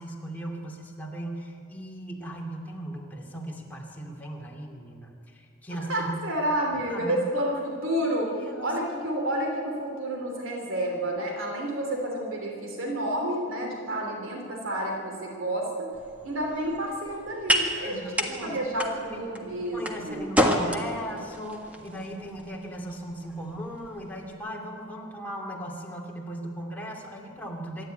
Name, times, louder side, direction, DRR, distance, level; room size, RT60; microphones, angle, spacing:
voice 1, 0.0-6.1 6.7-7.2 8.4-8.7 17.8-19.2 19.7-27.9, right 1 dB, 10° left, -2 dB, 2.6 m, -38 dB
voice 2, 5.7-8.3 8.6-15.9 16.2-20.3, right 1 dB, 75° right, 0 dB, 3.1 m, -30 dB
sound 1, 15.9-24.3, equal, 5° right, 1.6 m, -31 dB
26.0 x 11.5 x 9.2 m, 2.5 s
head